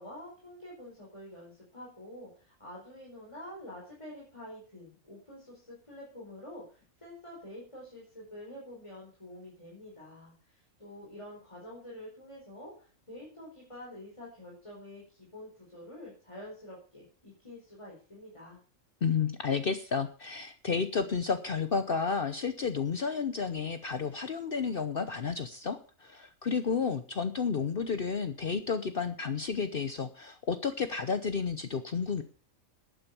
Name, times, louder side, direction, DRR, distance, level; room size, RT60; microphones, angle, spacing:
voice 1, 0.0-18.6, left 1 dB, 20° left, -4 dB, 5.1 m, -47 dB
voice 2, 19.0-32.2, left 5 dB, 50° left, 10 dB, 1.0 m, -31 dB
11.5 x 9.1 x 6.9 m, 0.40 s
omnidirectional pair, 1.4 m